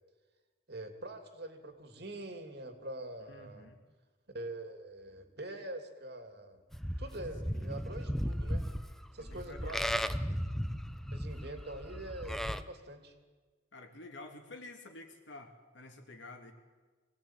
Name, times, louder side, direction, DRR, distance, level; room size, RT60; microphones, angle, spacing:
voice 1, 0.7-3.7 4.3-6.6 7.0-8.6 9.1-9.8 10.1-10.4 11.1-13.1, right 1 dB, 60° right, 6 dB, 3.0 m, -44 dB
voice 2, 3.3-3.8 7.5-7.7 9.2-10.1 13.7-16.5, left 2 dB, 75° left, 4 dB, 3.1 m, -50 dB
Livestock farm animals working animals, 6.7-12.6, equal, ahead, 0.7 m, -36 dB
24.5 x 18.0 x 9.1 m, 1.4 s
head